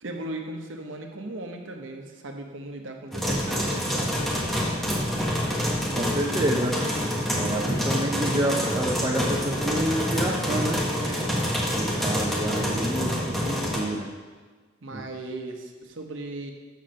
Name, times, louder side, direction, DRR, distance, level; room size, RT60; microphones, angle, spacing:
voice 1, 0.0-4.9 11.0-11.4 11.7-12.4 14.8-16.5, right 2 dB, 70° right, 3 dB, 0.9 m, -38 dB
sound 1, 3.1-13.8, equal, ahead, 1.3 m, -27 dB
voice 2, 5.9-6.8 7.4-10.8 11.7-14.1 14.9-15.0, right 1 dB, 20° right, -2 dB, 0.5 m, -28 dB
6.4 x 4.3 x 6.3 m, 1.4 s
head